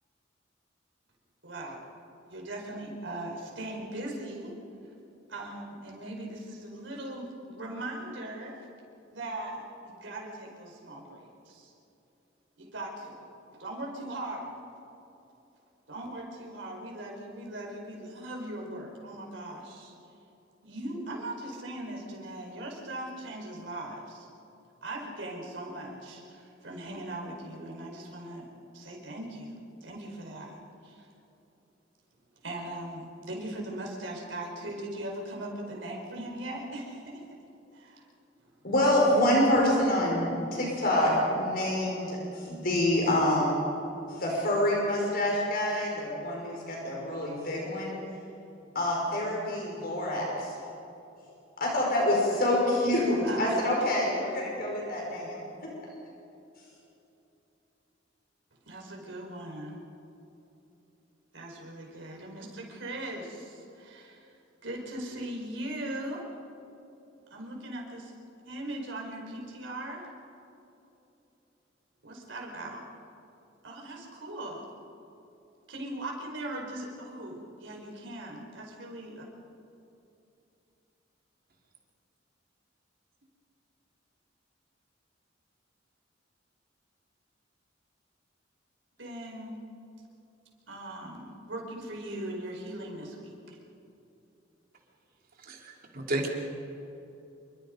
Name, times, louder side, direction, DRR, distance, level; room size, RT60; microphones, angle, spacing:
voice 1, 1.4-1.9 2.3-4.6 5.3-8.6 9.0-11.7 12.6-13.3 13.6-14.5 15.9-19.9 20.6-24.3 24.8-28.5 28.7-31.1 32.4-37.2 37.7-38.0 38.4-38.6 53.2-54.1 58.7-59.8 61.3-66.3 67.3-68.1 68.4-70.1 72.0-72.8 73.6-74.6 75.7-79.3 89.0-89.6 90.7-93.6, right 1 dB, 70° right, 0 dB, 5.0 m, -39 dB
voice 2, 38.6-43.6 44.1-48.0 48.8-50.6 51.6-55.7, left 1 dB, 50° left, -2 dB, 5.1 m, -27 dB
voice 3, 95.4-96.3, right 1 dB, 50° right, 0 dB, 3.5 m, -33 dB
27.5 x 24.0 x 5.2 m, 2.9 s
head